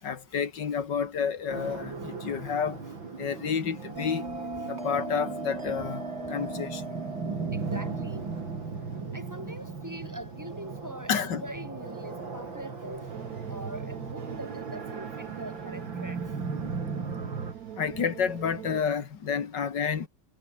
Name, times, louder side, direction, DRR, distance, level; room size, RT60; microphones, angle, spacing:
voice 1, 0.0-2.8 3.2-4.3 4.7-6.0 6.3-6.8 11.1-11.4 17.8-20.1, left 7 dB, 70° left, 2.5 m, -30 dB
sound 1, 1.5-17.5, right 4 dB, 90° right, 4.2 m, -37 dB
Bell, 4.0-9.0, right 2 dB, 35° right, 4.8 m, -38 dB
voice 2, 7.5-8.3 9.1-13.1 13.5-16.2, right 1 dB, 10° right, 4.6 m, -42 dB
sound 2, 13.1-18.8, right 11 dB, 60° right, 1.2 m, -42 dB
omnidirectional pair, 2.0 m